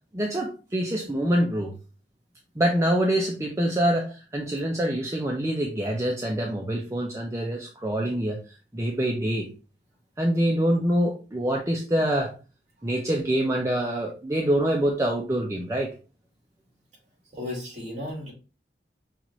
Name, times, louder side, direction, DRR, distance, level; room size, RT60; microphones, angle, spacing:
voice 1, 0.1-1.7 2.6-8.4 8.7-9.5 10.2-12.3 12.8-15.9, right 1 dB, 15° right, 0 dB, 0.5 m, -25 dB
voice 2, 17.3-18.3, left 1 dB, 40° right, -2 dB, 2.3 m, -34 dB
5.8 x 2.5 x 3.0 m, 0.33 s
head